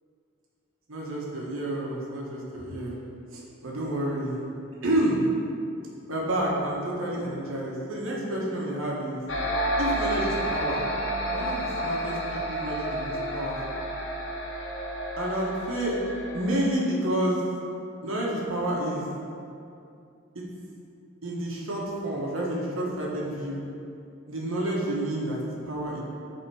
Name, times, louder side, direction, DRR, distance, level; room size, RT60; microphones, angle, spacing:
voice 1, 0.9-3.0 3.3-4.4 4.8-5.2 6.1-9.2 9.8-10.9 11.3-13.7 15.2-16.0 16.3-17.4 18.0-19.1 20.3-20.4 21.2-23.6 24.3-26.0, right 1 dB, 80° right, -4 dB, 1.2 m, -29 dB
sound 1, 9.3-16.7, equal, 65° left, 0.8 m, -30 dB
6.2 x 3.7 x 4.8 m, 2.6 s
head